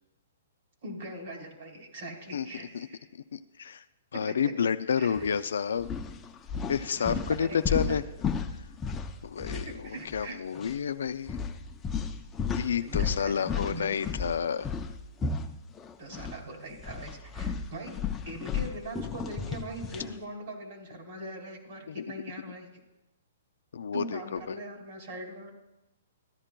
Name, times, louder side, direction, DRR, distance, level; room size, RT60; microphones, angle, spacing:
voice 1, 0.8-3.1 4.3-4.4 5.0-5.1 7.1-8.1 9.6-10.4 12.8-14.1 16.0-17.9 18.2-22.7 23.9-25.5, right 1 dB, 60° right, 2 dB, 2.3 m, -41 dB
voice 2, 3.3-3.8 4.1-5.9 6.7-8.0 9.2-11.4 12.5-14.7 21.9-22.0 23.7-24.6, left 7 dB, 80° left, 11 dB, 0.4 m, -30 dB
sound 1, 5.2-5.4 5.8-10.3 10.5-10.8 11.3-16.4 16.7-20.2, left 6 dB, 15° left, 0.5 m, -34 dB
14.0 x 10.0 x 2.2 m, 0.97 s
hypercardioid pair, 150°, 0 cm